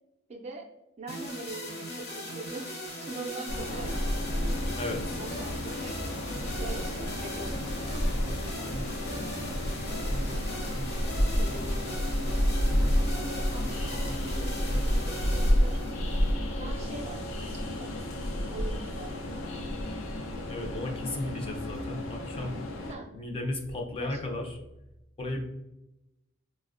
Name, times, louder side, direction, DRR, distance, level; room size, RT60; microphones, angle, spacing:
voice 1, 0.3-0.7 1.0-2.7 3.0-4.2 5.2-6.1 6.6-12.3 13.0-15.9 16.6-18.1 18.5-19.7 22.9-23.1 24.0-24.2, right 3 dB, 35° right, 2 dB, 0.4 m, -44 dB
sound 1, 1.1-17.1, left 1 dB, 55° left, 0.9 m, -40 dB
Train, 3.5-22.9, equal, 85° left, 0.5 m, -30 dB
voice 2, 4.8-5.2 20.5-22.6 23.1-24.6 25.2-25.4, left 2 dB, 30° left, 2 dB, 0.4 m, -34 dB
4.1 x 2.1 x 2.4 m, 0.92 s
head